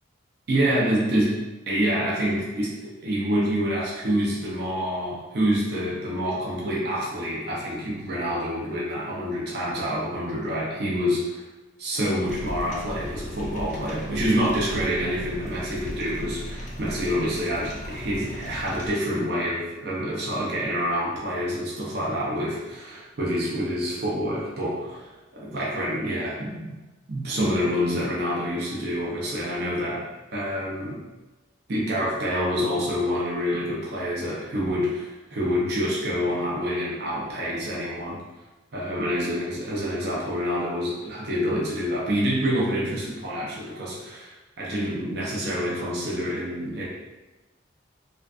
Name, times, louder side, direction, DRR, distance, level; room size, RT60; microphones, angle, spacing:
voice 1, 0.5-1.3 1.7-2.7 3.0-11.4 11.8-26.8 27.1-30.0 30.3-31.0 31.7-38.2 38.7-46.9, equal, 55° right, -5 dB, 0.5 m, -27 dB
sound 1, 12.2-18.9, equal, 40° left, 0.3 m, -37 dB
2.3 x 2.3 x 2.4 m, 1.1 s
head